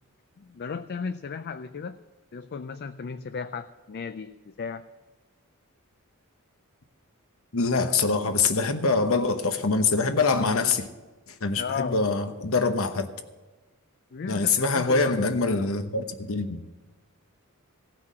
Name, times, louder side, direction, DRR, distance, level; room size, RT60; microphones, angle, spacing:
voice 1, 0.4-2.0 2.3-4.8 11.5-12.0 14.1-15.3 15.6-15.7, left 5 dB, 45° left, 10 dB, 0.4 m, -35 dB
voice 2, 7.5-10.9 11.4-13.1 14.3-16.6, left 4 dB, 65° left, 8 dB, 1.0 m, -24 dB
16.5 x 6.1 x 7.5 m, 1.2 s
head